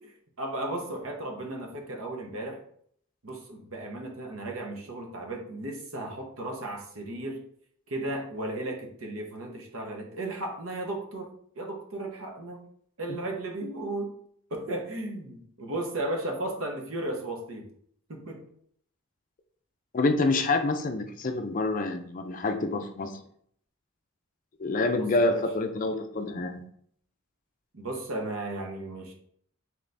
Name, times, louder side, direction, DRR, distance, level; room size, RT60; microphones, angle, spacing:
voice 1, 0.0-2.6 3.2-7.4 7.9-11.3 11.6-12.7 13.0-14.2 14.5-17.7 18.1-18.4 25.0-25.4 27.7-29.1, right 1 dB, 80° right, 2 dB, 0.9 m, -35 dB
voice 2, 19.9-23.2 24.6-26.6, left 2 dB, 40° left, 6 dB, 0.4 m, -27 dB
3.9 x 3.0 x 3.3 m, 0.65 s
head